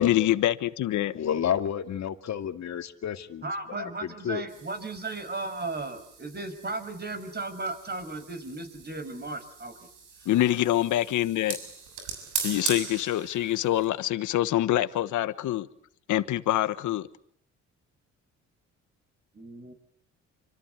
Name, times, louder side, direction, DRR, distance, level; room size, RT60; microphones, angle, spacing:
voice 1, 0.0-1.1 10.2-11.6 12.4-15.7 16.1-17.1, left 14 dB, 80° left, 1.4 m, -25 dB
voice 2, 1.1-3.4 3.8-4.4, left 9 dB, 60° left, 2.4 m, -30 dB
voice 3, 3.4-9.9 10.2-10.3 19.3-19.7, right 3 dB, 35° right, 6.0 m, -36 dB
sound 1, 4.5-13.9, right 6 dB, 85° right, 6.8 m, -40 dB
27.5 x 26.0 x 8.2 m
cardioid pair, 90°, 30 cm